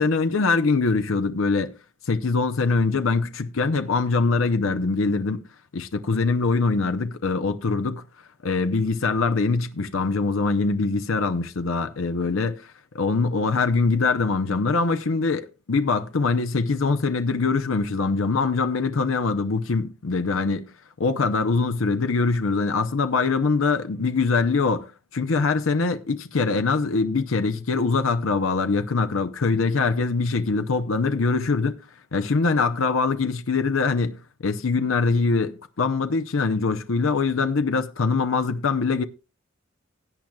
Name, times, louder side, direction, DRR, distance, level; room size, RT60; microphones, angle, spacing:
voice 1, 0.0-1.7 2.1-5.4 5.7-8.0 8.4-20.7 21.0-24.9 25.1-31.8 32.1-34.2 34.4-39.0, left 4 dB, 85° left, 0.7 m, -23 dB
16.5 x 8.7 x 2.3 m
head